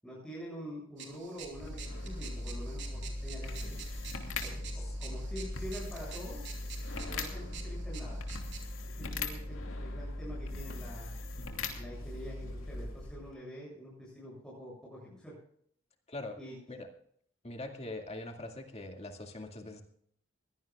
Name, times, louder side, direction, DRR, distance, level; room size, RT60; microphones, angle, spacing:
voice 1, 0.0-3.8 4.4-6.4 7.1-8.2 8.9-11.2 11.8-15.3 16.4-16.6, equal, 5° left, -6 dB, 7.7 m, -46 dB
sound 1, 1.0-8.7, right 7 dB, 65° right, 3.4 m, -49 dB
sound 2, 1.4-13.3, left 2 dB, 90° left, 2.8 m, -39 dB
voice 2, 16.1-16.4 16.7-16.9 17.4-19.8, left 2 dB, 30° left, 4 dB, 2.1 m, -42 dB
22.0 x 17.0 x 2.4 m, 0.64 s
head